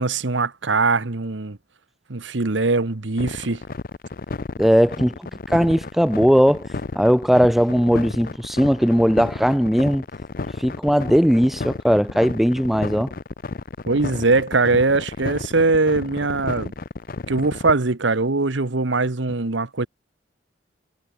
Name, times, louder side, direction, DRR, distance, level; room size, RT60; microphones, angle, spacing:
voice 1, 0.0-1.6 2.1-3.6 13.9-16.7 17.3-19.9, right 3 dB, 75° right, 1.2 m, -21 dB
sound 1, 3.2-17.7, left 3 dB, 45° left, 0.6 m, -32 dB
voice 2, 4.6-5.2 5.5-6.7 7.0-10.0 10.6-13.1, equal, ahead, 0.4 m, -18 dB
head